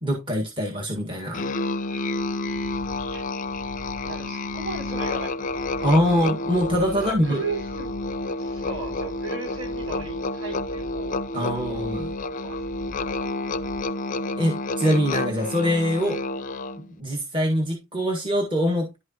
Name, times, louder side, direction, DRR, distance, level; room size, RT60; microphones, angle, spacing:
voice 1, 0.0-1.4 5.8-7.4 11.3-12.1 14.4-16.2 16.8-18.9, equal, 25° right, 1.6 m, -23 dB
Musical instrument, 1.3-16.9, left 2 dB, 40° left, 0.5 m, -30 dB
sound 1, 2.2-13.8, left 1 dB, 50° right, 2.1 m, -44 dB
voice 2, 4.0-5.3 5.7-5.9 6.9-7.9 8.4-11.9 12.4-12.6, right 3 dB, 80° right, 6.0 m, -36 dB
11.0 x 6.3 x 2.9 m
head